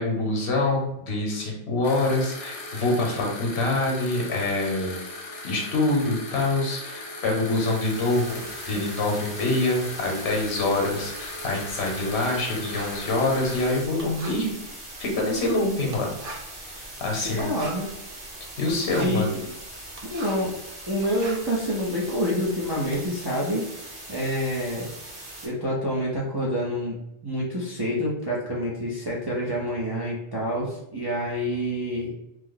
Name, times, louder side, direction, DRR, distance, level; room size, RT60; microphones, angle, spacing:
voice 1, 0.0-5.0 5.4-8.4 8.6-14.5 15.0-16.1 16.7-17.5 18.6-19.3, left 2 dB, 65° left, 0 dB, 1.1 m, -25 dB
sound 1, 1.8-13.8, left 2 dB, 50° left, 0.4 m, -38 dB
sound 2, 7.4-25.5, right 1 dB, 80° right, 1.5 m, -41 dB
Writing, 10.3-20.5 20.9-23.1, right 2 dB, 60° right, 0.7 m, -44 dB
voice 2, 17.2-17.9 18.9-19.4 20.1-20.6 20.9-23.7 24.1-24.9 25.4-27.0 27.2-32.1, equal, 30° right, -6 dB, 0.4 m, -27 dB
3.0 x 2.0 x 3.7 m, 0.85 s
omnidirectional pair, 1.2 m